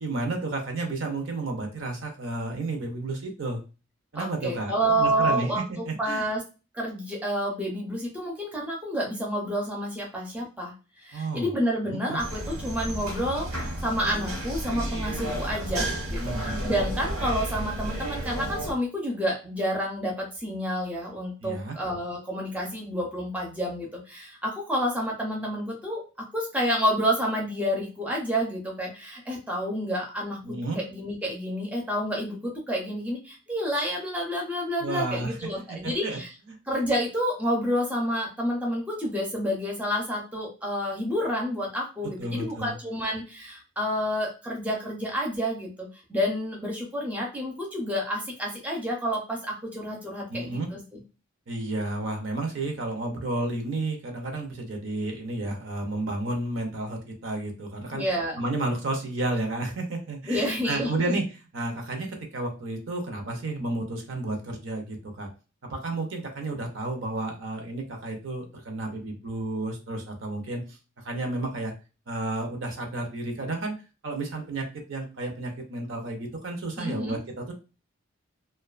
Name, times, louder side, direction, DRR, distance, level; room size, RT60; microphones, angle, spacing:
voice 1, 0.0-3.6 4.1-6.3 11.1-11.5 11.9-12.2 16.1-16.6 21.4-21.7 30.4-30.8 34.8-35.4 35.7-36.2 36.5-36.6 42.2-42.8 50.3-50.7 51.5-58.0 58.4-61.3 61.5-65.3 65.7-70.8 71.0-71.7 72.1-73.7 74.0-77.5, right 2 dB, 60° right, 3 dB, 0.6 m, -32 dB
voice 2, 4.1-6.4 6.7-26.0 26.3-30.4 30.7-36.3 36.7-51.0 57.9-58.4 60.3-61.2 76.8-77.2, equal, 5° right, -2 dB, 0.5 m, -29 dB
sound 1, 12.2-18.7, right 1 dB, 85° right, 1.2 m, -32 dB
2.4 x 2.2 x 2.4 m, 0.32 s
head